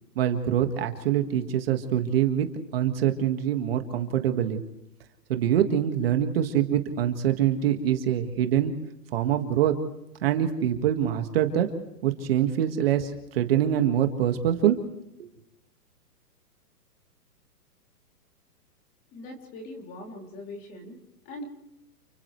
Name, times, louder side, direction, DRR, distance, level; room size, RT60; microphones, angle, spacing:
voice 1, 0.2-2.5 2.7-4.6 5.3-8.7 9.1-9.7 10.2-11.7 12.0-14.8 15.2-15.3, right 10 dB, 35° right, 6 dB, 1.8 m, -24 dB
voice 2, 19.1-21.4, left 1 dB, 20° left, 2 dB, 3.2 m, -41 dB
30.0 x 30.0 x 3.3 m, 0.87 s
hypercardioid pair, 165°, 47 cm